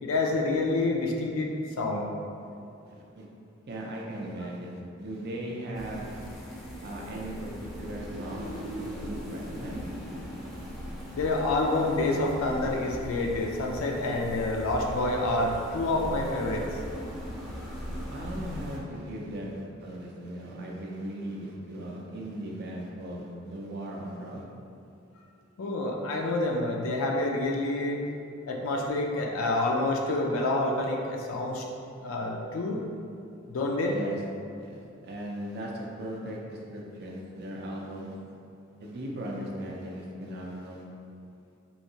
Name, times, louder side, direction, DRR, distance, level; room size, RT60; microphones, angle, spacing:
voice 1, 0.0-1.5 1.8-2.1 11.1-16.6 25.6-28.0 28.5-31.6 32.0-32.9 33.5-34.0, left 2 dB, 75° left, 1 dB, 0.4 m, -28 dB
voice 2, 2.8-3.3 3.7-6.1 6.8-9.8 18.1-24.4 33.9-34.2 34.6-38.2 38.8-40.8, right 1 dB, 55° right, -2 dB, 0.5 m, -38 dB
sound 1, 5.7-18.8, equal, ahead, 0.5 m, -39 dB
3.1 x 2.7 x 2.7 m, 2.6 s
head